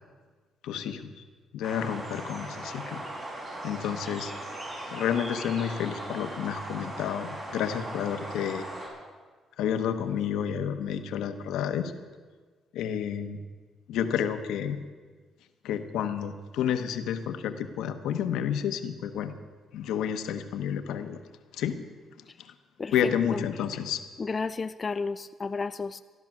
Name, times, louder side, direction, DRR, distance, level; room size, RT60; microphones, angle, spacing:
voice 1, 0.6-1.2 1.5-3.0 3.6-4.3 4.9-8.7 9.6-11.9 12.7-13.4 13.9-14.8 15.6-19.3 19.7-21.2 21.5-21.8 22.9-24.0, left 8 dB, 85° left, 8 dB, 1.0 m, -30 dB
sound 1, 1.6-8.9, right 1 dB, 35° right, 5.5 m, -39 dB
voice 2, 24.2-26.0, left 4 dB, 35° left, 11 dB, 0.4 m, -32 dB
14.5 x 12.0 x 6.1 m, 1.5 s
cardioid pair, 90°, 0 cm